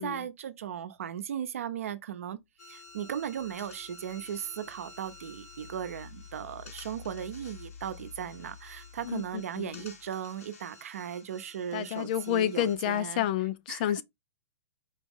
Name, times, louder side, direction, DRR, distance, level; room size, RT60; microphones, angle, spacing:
voice 1, 0.0-2.4 2.7-13.2 13.7-14.0, right 9 dB, 70° right, 0.7 m, -37 dB
sound 1, 2.6-12.8, left 3 dB, 85° left, 1.4 m, -53 dB
sound 2, 2.9-10.4, left 6 dB, 65° left, 0.9 m, -51 dB
voice 2, 9.0-9.9 11.7-14.0, left 11 dB, 35° left, 0.4 m, -30 dB
4.3 x 3.0 x 3.5 m
hypercardioid pair, 160°, 8 cm